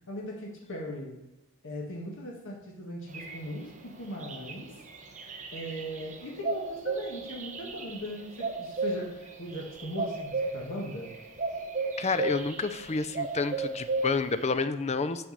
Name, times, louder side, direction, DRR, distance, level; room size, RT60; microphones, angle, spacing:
voice 1, 0.1-1.1 1.6-4.7 5.5-11.1, equal, 60° left, -1 dB, 1.8 m, -39 dB
sound 1, 3.1-14.5, right 3 dB, 35° right, 1.1 m, -35 dB
voice 2, 12.0-15.3, left 4 dB, 30° left, 11 dB, 0.5 m, -30 dB
6.2 x 6.2 x 6.6 m, 0.98 s
head